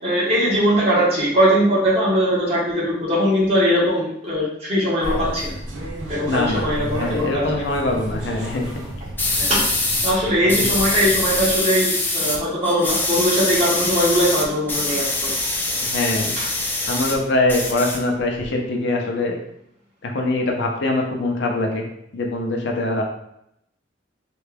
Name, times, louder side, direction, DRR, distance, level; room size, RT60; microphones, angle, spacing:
voice 1, 0.0-5.5 6.1-7.6 9.4-9.6 10.0-15.3 16.4-16.5, equal, 35° right, -7 dB, 1.3 m, -20 dB
sound 1, 5.0-11.6, right 1 dB, 80° right, 0.7 m, -33 dB
voice 2, 6.3-8.7 10.6-10.7 15.8-16.3 16.9-19.4 20.0-21.8 22.1-23.0, left 2 dB, 65° left, 1 dB, 0.6 m, -23 dB
sound 2, 9.2-10.1 10.5-12.4 12.6-17.2 17.5-18.5, left 2 dB, 10° left, 0.4 m, -24 dB
3.3 x 2.3 x 3.3 m, 0.75 s
head